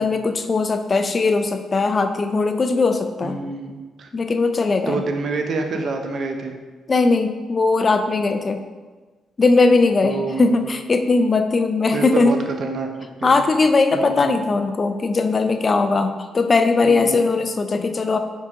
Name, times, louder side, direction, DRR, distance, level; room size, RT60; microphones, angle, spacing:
voice 1, 0.0-3.4 4.1-5.0 6.9-8.6 9.4-12.4 13.2-18.2, left 3 dB, 40° left, 8 dB, 0.4 m, -19 dB
voice 2, 3.2-4.1 4.9-6.6 10.0-10.4 11.9-12.9 13.2-13.4 13.9-14.3 16.8-17.2, right 3 dB, 60° right, 4 dB, 0.5 m, -27 dB
4.6 x 3.7 x 2.9 m, 1.3 s
cardioid pair, 75°, 0 cm